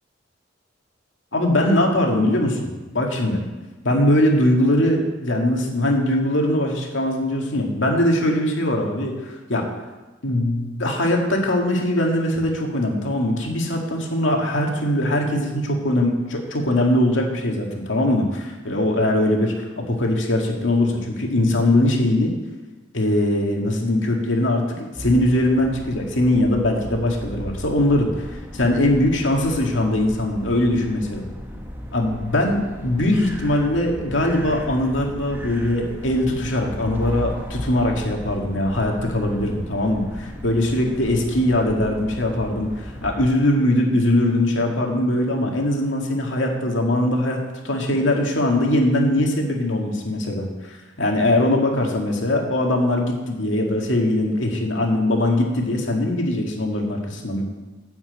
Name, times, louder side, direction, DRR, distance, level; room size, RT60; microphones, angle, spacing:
voice 1, 1.3-3.4 3.8-9.7 10.2-22.3 22.9-31.3 31.9-47.4 47.6-57.4, left 1 dB, 85° left, 1 dB, 2.1 m, -21 dB
sound 1, 24.9-43.3, equal, 10° right, 1.0 m, -35 dB
10.5 x 5.9 x 7.9 m, 1.2 s
head